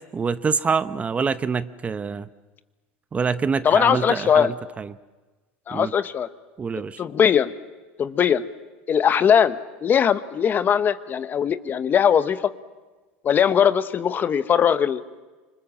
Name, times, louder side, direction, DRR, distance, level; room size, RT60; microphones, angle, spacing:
voice 1, 0.1-2.3 3.1-4.9 5.7-5.9 6.6-7.0, right 5 dB, 25° right, 13 dB, 0.8 m, -26 dB
voice 2, 3.6-4.5 5.7-6.3 7.0-7.5 8.0-8.4 8.9-12.5 13.2-15.0, left 8 dB, 35° left, 12 dB, 1.1 m, -20 dB
25.5 x 25.5 x 7.5 m, 1.3 s
supercardioid pair, 105°, 6 cm